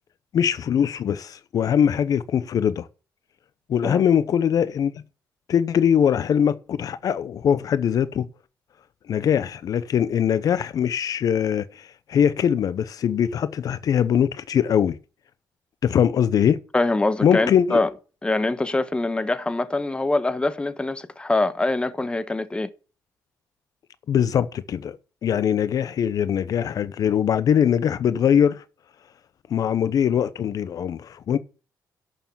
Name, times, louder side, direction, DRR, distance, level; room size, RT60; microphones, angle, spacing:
voice 1, 0.3-2.9 3.7-4.9 5.5-8.3 9.1-15.0 15.8-16.6 17.2-17.8 24.1-28.6 29.5-31.4, left 8 dB, 55° left, 0.8 m, -22 dB
voice 2, 16.7-17.9 18.2-22.7, left 2 dB, 15° left, 1.2 m, -24 dB
11.5 x 6.8 x 7.2 m
cardioid pair, 115°, 7 cm